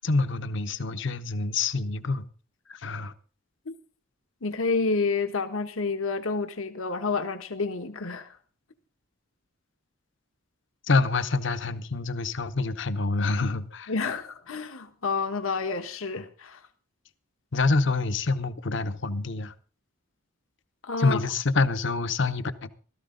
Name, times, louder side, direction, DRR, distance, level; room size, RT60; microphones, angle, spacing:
voice 1, 0.0-2.2 2.8-3.1 10.8-13.9 17.5-19.5 21.0-22.7, left 3 dB, 60° left, 0.9 m, -26 dB
voice 2, 4.4-8.3 13.9-16.6 20.8-21.2, left 4 dB, 80° left, 1.2 m, -29 dB
15.5 x 14.0 x 3.8 m
head